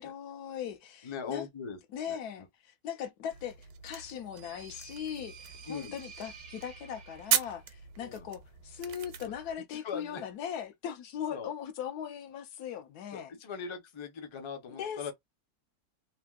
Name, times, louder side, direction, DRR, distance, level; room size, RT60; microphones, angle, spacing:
voice 1, 0.0-1.5 1.9-13.3 14.8-15.1, left 9 dB, 85° left, 1.2 m, -39 dB
voice 2, 1.0-1.8 2.1-2.2 5.7-6.0 8.0-8.3 9.3-9.4 9.7-10.2 11.3-11.5 13.1-15.1, left 6 dB, 45° left, 0.3 m, -40 dB
sound 1, 3.3-9.5, right 10 dB, 85° right, 1.1 m, -37 dB
sound 2, 3.9-7.7, right 6 dB, 70° right, 0.4 m, -52 dB
3.3 x 2.6 x 2.3 m
omnidirectional pair, 1.6 m